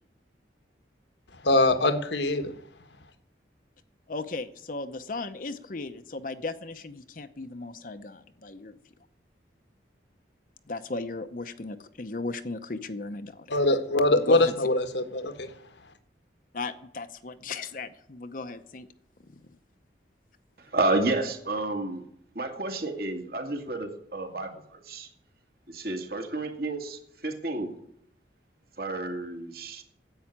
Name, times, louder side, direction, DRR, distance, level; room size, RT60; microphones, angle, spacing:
voice 1, 1.4-2.5 13.5-15.5, left 2 dB, 75° left, 1.4 m, -23 dB
voice 2, 4.1-8.8 10.7-13.5 14.1-14.5 16.5-18.9 19.3-19.5, left 3 dB, 45° left, 0.7 m, -36 dB
voice 3, 20.6-22.0 22.3-25.1 25.7-27.8 28.8-29.8, right 2 dB, 55° right, 2.1 m, -30 dB
10.5 x 8.4 x 9.9 m
head